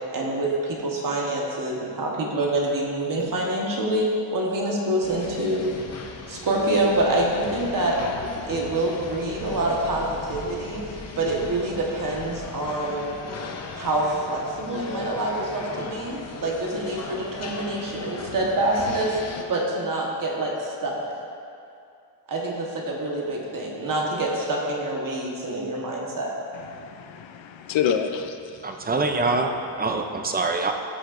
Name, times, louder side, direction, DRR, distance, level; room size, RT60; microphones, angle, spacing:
voice 1, 0.1-5.7 6.3-8.0 8.5-13.1 13.7-21.0 22.3-26.3, right 1 dB, 45° right, 1.3 m, -26 dB
sound 1, 5.0-19.4, left 4 dB, 35° left, 0.6 m, -37 dB
voice 2, 26.5-28.6, left 8 dB, 80° left, 0.7 m, -28 dB
voice 3, 28.6-30.7, right 3 dB, 20° right, 0.4 m, -25 dB
13.0 x 6.3 x 2.5 m
wide cardioid pair, 155°, 45 cm